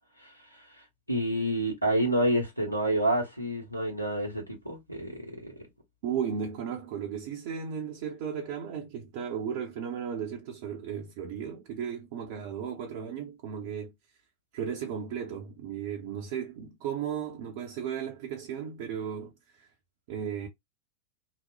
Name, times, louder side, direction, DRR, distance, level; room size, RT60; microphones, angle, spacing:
voice 1, 0.2-0.7 1.1-5.5, right 1 dB, 90° right, 0.9 m, -29 dB
voice 2, 6.0-13.9 14.5-19.7 20.1-20.5, right 8 dB, 50° right, 0.6 m, -35 dB
2.9 x 2.1 x 2.7 m
figure-of-eight pair, 90°, 0 cm